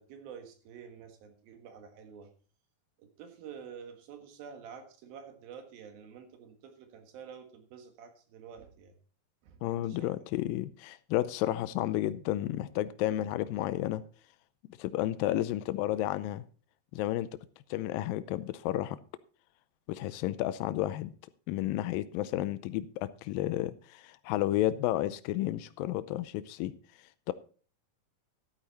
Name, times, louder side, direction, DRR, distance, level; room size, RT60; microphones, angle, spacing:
voice 1, 0.0-2.3 3.0-8.9 9.4-10.1, right 7 dB, 75° right, 6 dB, 3.3 m, -49 dB
voice 2, 9.6-14.0 14.8-16.5 16.9-17.3 17.7-19.0 19.9-21.1 21.5-26.7 27.3-27.4, left 14 dB, 80° left, 14 dB, 2.3 m, -32 dB
12.5 x 8.9 x 4.0 m, 0.40 s
omnidirectional pair, 4.3 m